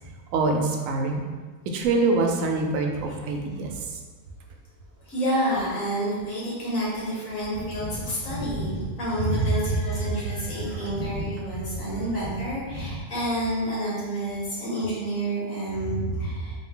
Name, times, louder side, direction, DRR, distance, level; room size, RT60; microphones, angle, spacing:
voice 1, 0.3-1.2 1.7-4.0 9.2-9.5 15.9-16.2, right 3 dB, 80° right, 2 dB, 1.0 m, -25 dB
voice 2, 5.0-16.6, equal, 90° left, -7 dB, 1.8 m, -29 dB
4.0 x 2.7 x 3.6 m, 1.4 s
omnidirectional pair, 1.4 m